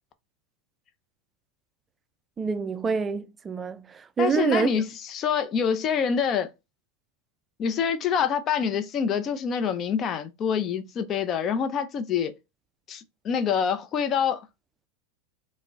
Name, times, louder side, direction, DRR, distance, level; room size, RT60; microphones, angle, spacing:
voice 1, 2.4-4.7, right 5 dB, 25° right, 0.3 m, -26 dB
voice 2, 4.2-6.5 7.6-12.3 12.9-14.5, left 7 dB, 35° left, 0.5 m, -26 dB
3.7 x 2.0 x 3.5 m
hypercardioid pair, 100°, 0 cm